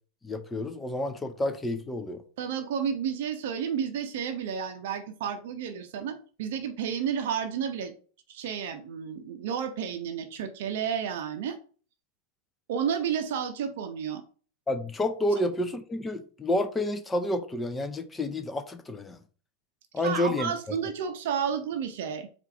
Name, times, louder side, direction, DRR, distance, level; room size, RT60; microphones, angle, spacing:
voice 1, 0.2-2.2 14.7-19.2 19.9-20.8, left 1 dB, 15° left, 0.5 m, -29 dB
voice 2, 2.4-7.9 8.3-11.6 12.7-14.2 20.0-22.3, right 7 dB, 55° right, 0.6 m, -31 dB
4.6 x 2.5 x 4.5 m
figure-of-eight pair, 90°, 0 cm